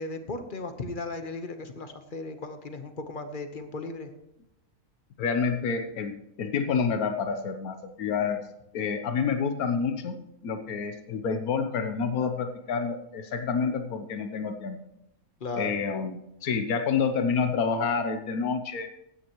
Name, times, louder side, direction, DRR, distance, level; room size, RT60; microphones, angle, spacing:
voice 1, 0.0-4.1 15.4-15.7, left 3 dB, 40° left, 8 dB, 1.2 m, -36 dB
voice 2, 5.2-8.4 8.7-10.2 10.4-14.8 15.6-18.9, left 5 dB, 90° left, 7 dB, 1.4 m, -28 dB
15.5 x 9.8 x 3.0 m, 0.86 s
omnidirectional pair, 1.5 m